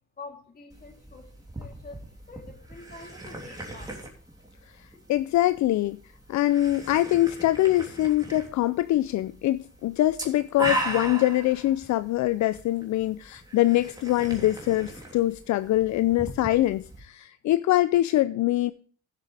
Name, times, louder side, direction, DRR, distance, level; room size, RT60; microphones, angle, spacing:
voice 1, 0.2-1.3 1.6-4.0, left 3 dB, 30° left, 3.1 m, -46 dB
sound 1, 0.7-17.0, right 1 dB, 15° right, 3.1 m, -38 dB
voice 2, 5.1-6.0 6.3-18.7, left 15 dB, 70° left, 0.5 m, -24 dB
15.5 x 7.6 x 3.4 m
cardioid pair, 90°, 30 cm